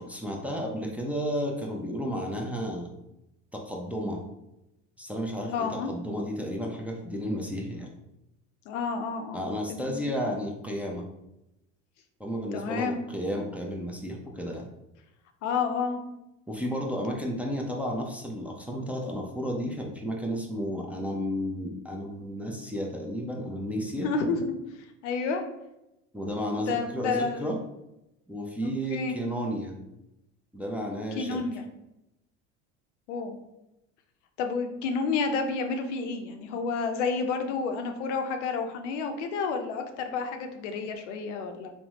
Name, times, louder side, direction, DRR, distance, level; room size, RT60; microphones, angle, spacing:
voice 1, 0.0-2.9 3.5-4.2 5.0-7.9 9.3-11.1 12.2-14.7 16.5-24.1 26.1-27.6 28.3-29.8 30.5-31.4, equal, 5° right, 0 dB, 0.4 m, -32 dB
voice 2, 5.5-5.9 8.7-10.1 12.5-13.0 15.4-16.0 24.0-24.4 25.0-25.4 26.7-27.5 28.9-29.1 31.1-31.6 33.1-33.4 34.4-41.7, left 4 dB, 80° left, 5 dB, 0.5 m, -30 dB
3.4 x 2.1 x 2.9 m, 0.89 s
hypercardioid pair, 80°, 35 cm